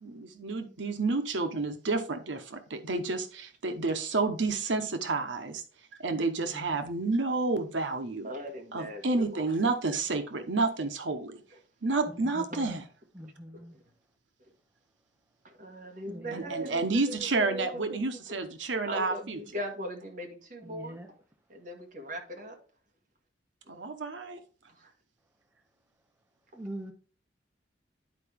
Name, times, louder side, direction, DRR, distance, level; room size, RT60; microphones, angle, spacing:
voice 1, 0.0-5.6 6.0-8.3 8.7-11.4 11.8-12.8 16.3-19.4 23.7-24.4, right 3 dB, 90° right, 1.0 m, -30 dB
voice 2, 8.2-9.5 13.5-13.6 15.4-18.2 18.8-21.0 21.5-22.6 24.8-24.9, equal, 45° right, 1.7 m, -40 dB
voice 3, 12.3-12.8 13.1-13.8 16.1-16.5 20.6-21.1 26.5-26.9, right 1 dB, 10° right, 0.6 m, -42 dB
10.5 x 4.7 x 3.5 m
head